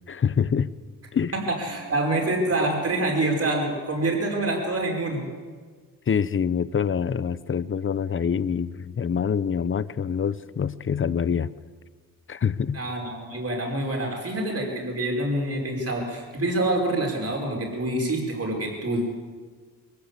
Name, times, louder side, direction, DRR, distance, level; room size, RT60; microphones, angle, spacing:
voice 1, 0.1-0.7 1.1-1.3 6.1-11.5 12.3-12.8, left 7 dB, 35° left, 17 dB, 0.7 m, -25 dB
voice 2, 1.3-5.2 12.7-19.1, right 2 dB, 45° right, 1 dB, 5.4 m, -26 dB
23.0 x 15.5 x 8.4 m, 1.5 s
wide cardioid pair, 115°, 35 cm